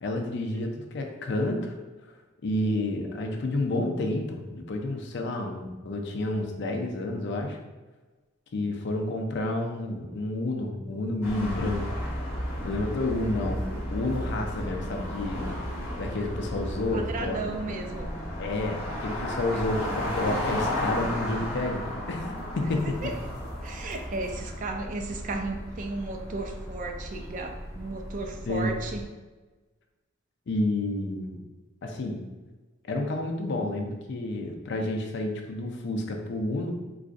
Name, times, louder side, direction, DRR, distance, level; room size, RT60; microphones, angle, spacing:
voice 1, 0.0-1.7 2.4-7.6 8.5-12.1 12.6-15.6 16.0-17.6 18.4-23.1 28.4-28.7 30.5-31.4 31.8-32.2 32.8-36.7, left 2 dB, 60° left, 3 dB, 0.4 m, -30 dB
Trucks cars bicycle are passed, 11.2-29.0, equal, 35° left, 1.2 m, -34 dB
voice 2, 16.9-18.1 22.8-23.1 23.6-29.0, right 3 dB, 40° right, 4 dB, 0.3 m, -34 dB
3.9 x 2.4 x 2.5 m, 1.2 s
head